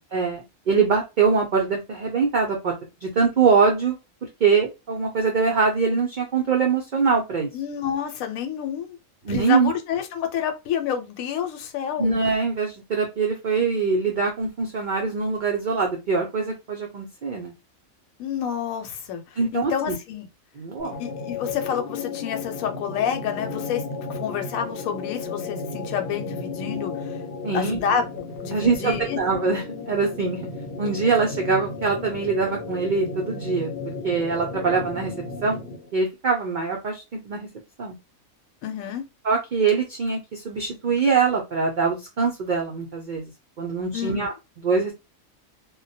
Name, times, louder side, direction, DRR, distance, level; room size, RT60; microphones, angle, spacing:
voice 1, 0.1-2.7 3.0-4.0 4.4-7.5 9.2-9.7 12.0-17.5 19.4-20.0 20.6-21.0 26.6-26.8 27.4-27.8 28.5-30.4 30.8-33.7 34.0-35.1 35.4-35.6 35.9-37.5 37.8-37.9 39.2-43.3 43.6-44.3 44.6-44.9, right 5 dB, 75° right, 0.4 m, -23 dB
voice 2, 7.5-9.0 9.3-12.2 18.2-20.3 21.0-27.2 27.5-29.2 38.6-39.0 43.9-44.3, left 8 dB, 80° left, 1.0 m, -29 dB
sound 1, 20.8-35.9, left 4 dB, 55° left, 0.7 m, -34 dB
2.2 x 2.1 x 2.6 m
omnidirectional pair, 1.5 m